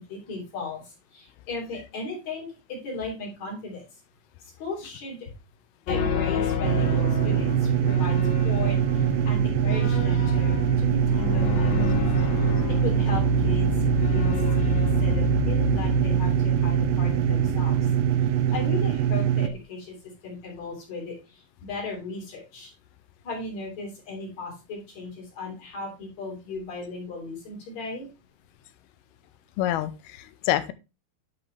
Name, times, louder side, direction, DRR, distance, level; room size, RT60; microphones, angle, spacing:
voice 1, 0.1-0.8 1.1-3.8 4.6-5.3 5.9-7.5 7.9-8.2 8.4-8.8 9.2-11.7 12.8-13.7 14.1-17.8 18.5-19.9 20.2-21.1 21.6-22.7 23.2-28.1, left 3 dB, 50° left, -1 dB, 4.3 m, -36 dB
sound 1, 5.9-19.6, left 8 dB, 70° left, 1.8 m, -30 dB
sound 2, 6.6-19.5, right 11 dB, 80° right, 2.0 m, -23 dB
voice 2, 29.6-30.7, left 13 dB, 90° left, 12 dB, 2.6 m, -27 dB
10.5 x 5.4 x 3.3 m, 0.27 s
omnidirectional pair, 4.3 m